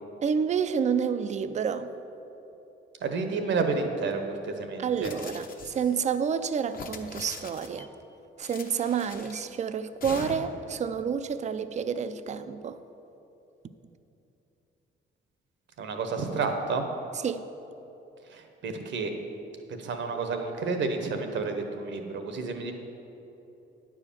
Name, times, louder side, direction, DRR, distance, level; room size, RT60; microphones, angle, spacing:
voice 1, 0.2-1.9 4.8-7.9 8.4-12.8 17.2-17.5, right 7 dB, 35° right, 11 dB, 0.4 m, -29 dB
voice 2, 3.0-5.1 15.8-16.9 18.3-19.1 19.8-22.7, right 4 dB, 70° right, 5 dB, 1.1 m, -30 dB
sound 1, 5.0-6.1 6.7-7.9 8.4-9.5 10.0-10.7, left 4 dB, 45° left, 0.9 m, -42 dB
9.5 x 4.9 x 7.3 m, 3.0 s
cardioid pair, 90°, 20 cm